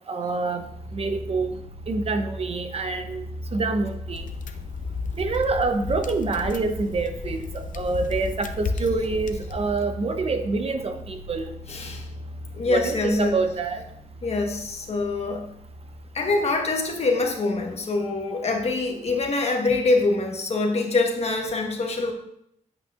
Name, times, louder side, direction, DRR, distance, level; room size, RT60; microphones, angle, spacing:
voice 1, 0.1-0.6 0.9-1.5 1.9-3.2 3.5-4.3 5.2-11.4 12.7-13.8, right 3 dB, 50° right, 7 dB, 0.7 m, -26 dB
sound 1, 0.6-17.3, left 1 dB, 70° right, 2.0 m, -39 dB
sound 2, 4.1-9.7, left 4 dB, 80° left, 0.5 m, -33 dB
voice 2, 11.7-12.1 12.5-13.4 14.2-15.5 16.1-22.1, left 3 dB, 55° left, 2 dB, 1.2 m, -24 dB
8.4 x 8.0 x 2.4 m, 0.74 s
wide cardioid pair, 125°, 13 cm